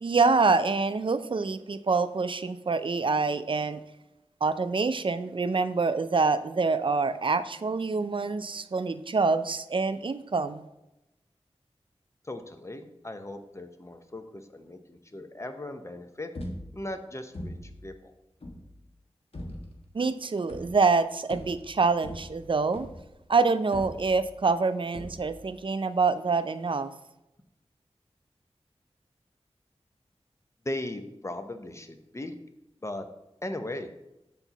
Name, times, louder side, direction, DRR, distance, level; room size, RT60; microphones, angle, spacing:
voice 1, 0.0-3.8 4.4-10.6 19.9-22.9 23.3-26.9, right 4 dB, 50° right, 12 dB, 0.4 m, -26 dB
voice 2, 12.2-16.3 16.7-18.1 30.6-32.3 32.8-33.1 33.4-33.9, left 1 dB, 25° left, 7 dB, 0.7 m, -38 dB
sound 1, 16.3-17.0 17.3-17.9 18.4-18.8 19.3-19.8 20.5-21.0 21.3-23.2 23.7-24.5 24.9-25.5, left 1 dB, 60° left, 1.2 m, -41 dB
7.1 x 4.5 x 3.9 m, 0.91 s
wide cardioid pair, 60°, 11 cm